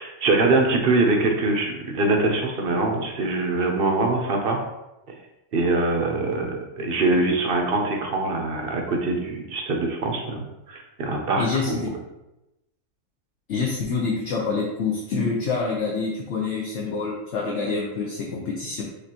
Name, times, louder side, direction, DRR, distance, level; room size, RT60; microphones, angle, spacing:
voice 1, 0.0-4.6 5.5-11.9, right 2 dB, 55° right, 2 dB, 0.7 m, -23 dB
voice 2, 11.4-11.8 13.5-18.8, left 4 dB, 65° left, -2 dB, 0.9 m, -26 dB
5.1 x 3.2 x 2.8 m, 0.95 s
omnidirectional pair, 1.4 m